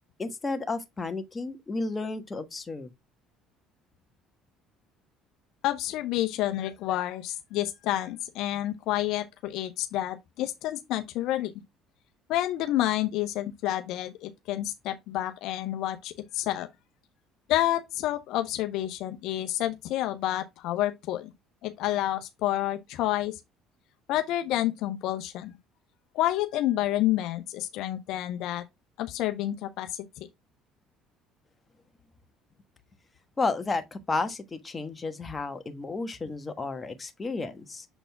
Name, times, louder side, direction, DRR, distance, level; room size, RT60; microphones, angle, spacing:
voice 1, 0.2-2.9 33.4-37.9, left 3 dB, 25° left, 1.2 m, -32 dB
voice 2, 5.6-11.5 12.3-16.7 17.5-21.3 21.6-23.4 24.1-25.6 26.1-28.6 29.0-30.3, left 14 dB, 70° left, 0.7 m, -29 dB
7.1 x 4.1 x 3.4 m
supercardioid pair, 75°, 0 cm